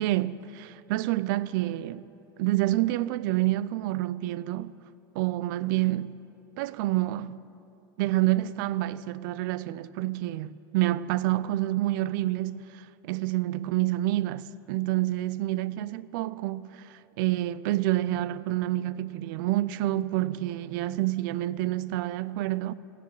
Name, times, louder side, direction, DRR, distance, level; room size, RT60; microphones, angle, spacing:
voice 1, 0.0-2.1 2.4-4.7 5.1-6.2 6.6-7.5 8.0-22.7, right 16 dB, 65° right, 0.4 m, -28 dB
16.0 x 7.0 x 8.9 m
hypercardioid pair, 105°, 12 cm